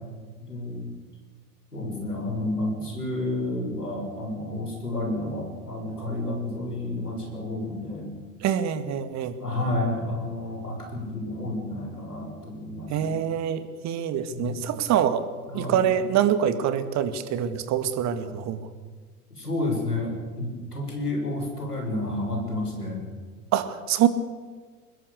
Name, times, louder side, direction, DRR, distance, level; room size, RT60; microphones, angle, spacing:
voice 1, 0.5-0.9 1.7-8.1 9.4-13.2 14.3-14.7 15.5-15.8 19.3-23.1, left 1 dB, 85° left, 1 dB, 6.7 m, -30 dB
voice 2, 8.4-9.3 12.9-15.2 15.5-18.6 23.5-24.1, right 9 dB, 35° right, 12 dB, 2.2 m, -25 dB
24.0 x 20.5 x 6.8 m, 1.5 s
figure-of-eight pair, 80°, 45 cm